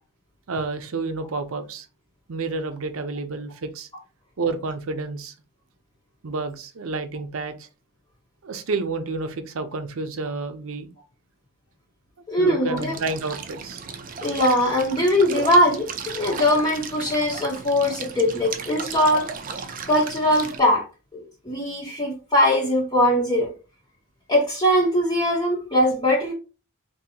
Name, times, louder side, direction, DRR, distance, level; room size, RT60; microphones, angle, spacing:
voice 1, 0.5-1.9 2.3-3.9 4.4-5.3 6.2-7.7 8.4-10.9 12.4-13.8, right 3 dB, 85° right, 0.6 m, -30 dB
voice 2, 12.3-12.9 14.2-15.9 16.1-19.3 19.9-20.8 21.1-23.5 24.3-26.3, left 1 dB, 20° left, 0.9 m, -21 dB
sound 1, 12.8-20.6, right 5 dB, 40° right, 0.5 m, -35 dB
3.8 x 2.7 x 2.8 m
head